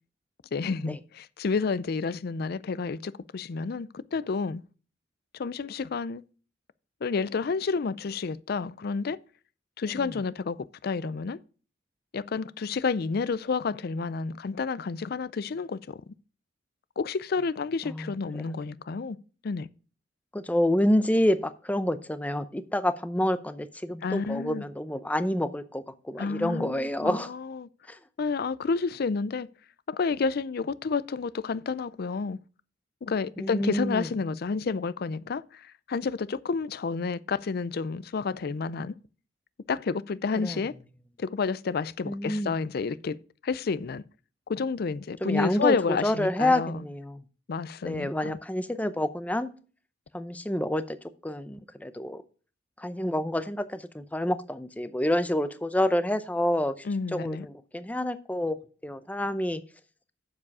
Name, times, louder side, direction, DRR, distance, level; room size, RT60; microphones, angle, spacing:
voice 1, 0.5-4.6 5.4-6.2 7.0-9.2 9.8-11.4 12.1-16.0 17.0-19.2 19.4-19.7 24.0-24.6 26.2-27.7 28.2-29.5 29.9-32.4 33.0-38.9 39.7-40.7 41.2-43.2 43.4-44.0 44.5-46.8 47.5-48.4 56.9-57.5, left 4 dB, 55° left, 0.4 m, -30 dB
voice 2, 20.3-27.3 27.9-28.0 33.4-34.1 40.4-40.6 42.1-42.6 45.2-47.2 47.8-49.5 50.1-51.0 51.2-52.2 52.8-56.8 57.1-58.6 58.8-59.6, left 1 dB, 10° left, 0.6 m, -28 dB
7.3 x 7.3 x 4.8 m
head